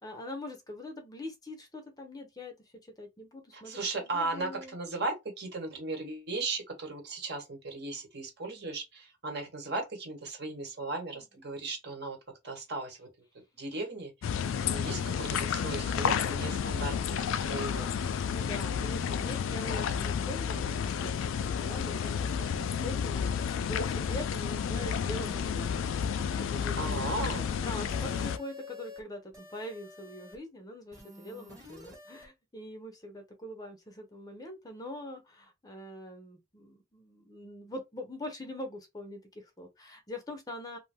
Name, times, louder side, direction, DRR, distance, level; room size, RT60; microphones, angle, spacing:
voice 1, 0.0-4.8 11.1-11.2 18.3-27.0 27.6-40.8, left 1 dB, 20° left, 0.6 m, -43 dB
voice 2, 3.5-12.2 12.4-13.1 13.6-14.1 14.7-17.9 26.8-27.5, right 3 dB, 55° right, 1.1 m, -36 dB
sound 1, 14.2-28.4, left 7 dB, 80° left, 0.3 m, -31 dB
sound 2, 27.9-29.0 29.3-30.4 30.9-32.3, left 4 dB, 20° right, 1.0 m, -48 dB
2.6 x 2.2 x 3.4 m
head